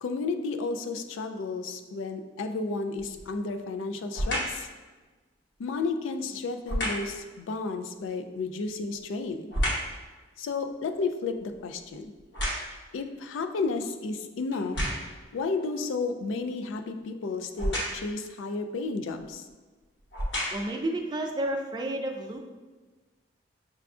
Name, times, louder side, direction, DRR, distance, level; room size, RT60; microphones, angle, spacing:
voice 1, 0.0-4.7 5.6-9.5 10.4-12.1 12.9-14.8 15.3-19.4, left 3 dB, 90° left, 7 dB, 0.3 m, -32 dB
sound 1, 3.0-3.4 4.1-4.6 6.6-7.2 8.6-10.0 10.5-13.0 13.6-13.7 14.5-15.2 17.6-18.2 19.2-19.3 20.0-20.8 21.4-21.5, equal, 70° left, 1.1 m, -31 dB
voice 2, 20.5-22.4, right 1 dB, 25° right, 3 dB, 0.3 m, -31 dB
6.7 x 2.3 x 2.4 m, 1.3 s
head